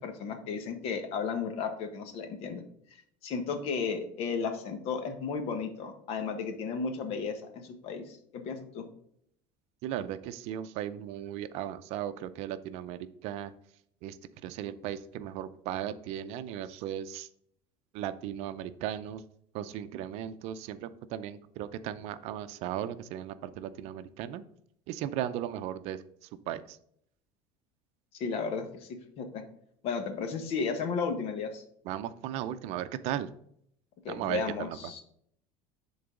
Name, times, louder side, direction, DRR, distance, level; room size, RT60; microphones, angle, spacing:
voice 1, 0.0-2.6 3.2-8.9 28.1-29.4 29.8-31.6 34.0-35.0, left 5 dB, 55° left, 6 dB, 1.3 m, -34 dB
voice 2, 9.8-13.5 14.0-14.2 14.4-17.3 17.9-19.2 19.5-24.4 24.9-26.8 31.9-33.3 34.1-34.8, right 11 dB, 65° right, 12 dB, 0.5 m, -36 dB
10.5 x 3.9 x 3.8 m, 0.68 s
supercardioid pair, 125°, 12 cm